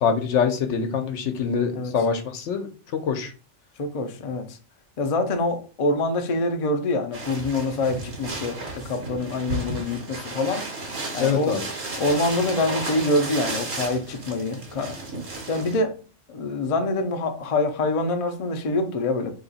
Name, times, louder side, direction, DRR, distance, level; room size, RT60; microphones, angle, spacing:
voice 1, 0.0-2.7 3.0-3.3 11.2-11.6, left 6 dB, 80° left, 1.0 m, -24 dB
voice 2, 3.8-4.6 5.0-10.6 11.1-11.6 12.0-15.0 15.5-15.9 16.3-19.3, left 2 dB, 45° left, 0.4 m, -25 dB
sound 1, 7.1-15.8, right 2 dB, 65° right, 1.4 m, -33 dB
2.9 x 2.8 x 4.0 m
omnidirectional pair, 1.2 m